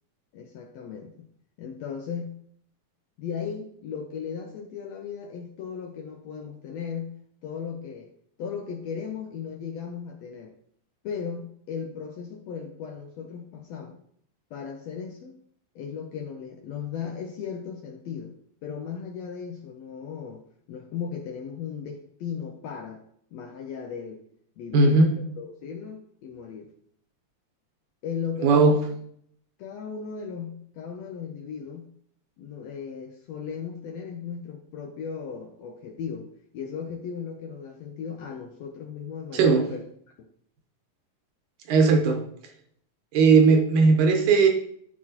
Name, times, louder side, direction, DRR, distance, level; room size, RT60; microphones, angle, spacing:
voice 1, 0.3-1.3 1.6-2.4 3.2-8.1 8.4-10.5 11.0-14.0 14.5-15.4 15.7-18.3 18.6-23.0 23.3-24.2 24.6-26.7 28.0-28.8 29.6-31.9 32.4-39.8 40.2-40.3, left 7 dB, 85° left, 2 dB, 1.5 m, -36 dB
voice 2, 24.7-25.1 28.4-28.8 39.3-39.7 41.7-42.2 43.1-44.5, right 4 dB, 75° right, 4 dB, 2.3 m, -18 dB
12.5 x 4.2 x 2.8 m, 0.66 s
omnidirectional pair, 3.8 m